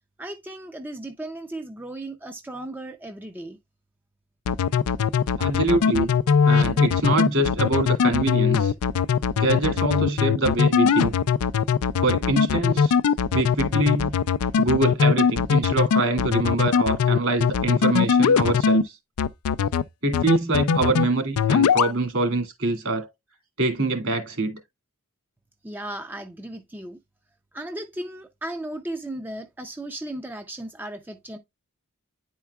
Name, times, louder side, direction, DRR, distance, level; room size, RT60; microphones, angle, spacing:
voice 1, 0.2-3.6 25.6-27.0 27.5-31.4, right 1 dB, 10° right, 0.5 m, -35 dB
sound 1, 4.5-18.8 19.2-19.8 20.1-21.1 21.4-21.9, left 6 dB, 85° left, 0.4 m, -20 dB
voice 2, 5.4-6.1 6.5-8.7 9.4-11.1 12.0-13.0 13.3-14.2 14.6-18.9 20.0-23.1 23.6-24.6, right 2 dB, 65° right, 2.2 m, -24 dB
9.8 x 4.5 x 2.3 m
head